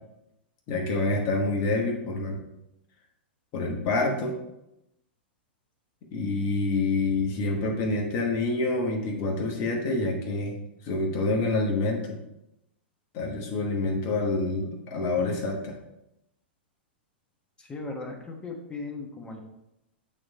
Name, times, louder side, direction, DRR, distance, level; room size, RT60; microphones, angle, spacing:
voice 1, 0.7-2.4 3.5-4.4 6.1-10.6 10.8-12.2 13.1-15.7, left 2 dB, 45° left, 1 dB, 1.2 m, -27 dB
voice 2, 17.6-19.4, left 3 dB, 15° left, 2 dB, 1.2 m, -37 dB
8.9 x 3.2 x 4.1 m, 0.87 s
figure-of-eight pair, 100°, 6 cm